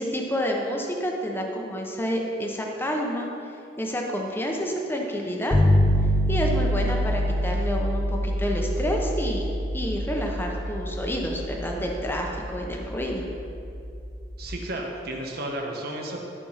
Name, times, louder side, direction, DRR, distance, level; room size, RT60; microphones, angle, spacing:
voice 1, 0.0-3.3 3.8-5.6 6.3-9.4 9.7-13.2, equal, 10° left, 0 dB, 1.0 m, -29 dB
sound 1, 5.5-14.5, equal, 60° left, 1.5 m, -26 dB
voice 2, 14.4-16.2, right 1 dB, 60° right, 0 dB, 1.3 m, -33 dB
13.0 x 4.4 x 5.7 m, 2.6 s
head